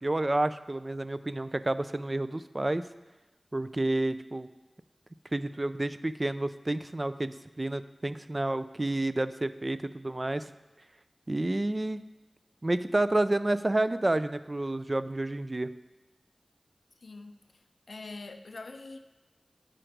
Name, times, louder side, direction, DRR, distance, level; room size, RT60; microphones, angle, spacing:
voice 1, 0.0-2.8 3.5-4.5 5.3-10.5 11.3-12.0 12.6-15.7, right 2 dB, 40° right, 13 dB, 0.3 m, -30 dB
voice 2, 17.0-19.0, left 3 dB, 85° left, 8 dB, 0.4 m, -44 dB
8.9 x 5.0 x 4.5 m, 1.1 s
wide cardioid pair, 45°, 0 cm